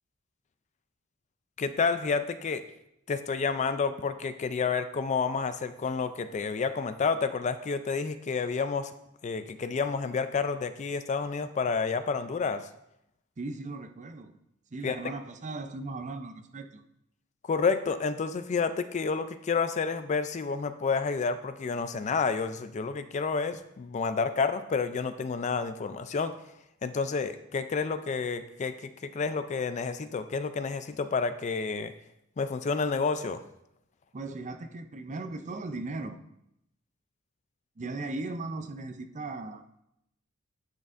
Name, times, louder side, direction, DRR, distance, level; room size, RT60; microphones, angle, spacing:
voice 1, 1.6-2.6 3.1-8.9 9.2-12.7 14.8-15.0 17.4-26.3 26.8-31.9 32.4-33.4, left 5 dB, 35° left, 11 dB, 0.4 m, -30 dB
voice 2, 13.4-14.4 14.7-16.8 34.1-36.2 37.8-39.8, right 2 dB, 35° right, 8 dB, 0.5 m, -38 dB
10.0 x 6.5 x 2.5 m, 0.81 s
head